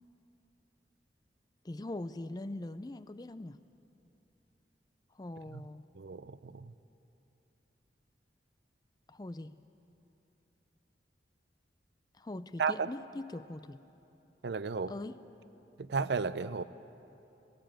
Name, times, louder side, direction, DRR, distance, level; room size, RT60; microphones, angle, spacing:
voice 1, 1.6-3.6 5.1-5.9 9.1-9.6 12.1-13.8 14.9-15.2, left 2 dB, 20° left, 13 dB, 0.4 m, -42 dB
voice 2, 5.9-6.7 12.6-12.9 14.4-14.9 15.8-16.6, right 5 dB, 70° right, 14 dB, 0.6 m, -33 dB
18.5 x 17.5 x 9.0 m, 2.9 s
head